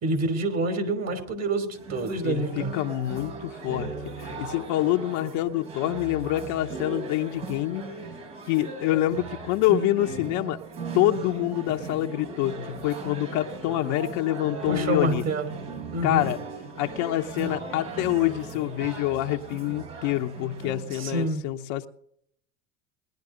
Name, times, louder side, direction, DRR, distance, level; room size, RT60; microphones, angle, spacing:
voice 1, 0.0-2.7 14.7-15.5 15.9-16.3 21.0-21.4, right 2 dB, 40° right, 6 dB, 3.1 m, -27 dB
sound 1, 1.7-21.3, right 3 dB, 75° right, 5.5 m, -38 dB
voice 2, 2.2-7.8 8.5-10.6 10.9-15.2 16.0-16.4 16.8-21.9, left 14 dB, 65° left, 4 dB, 1.0 m, -26 dB
19.5 x 10.5 x 3.8 m, 0.68 s
hypercardioid pair, 80°, 38 cm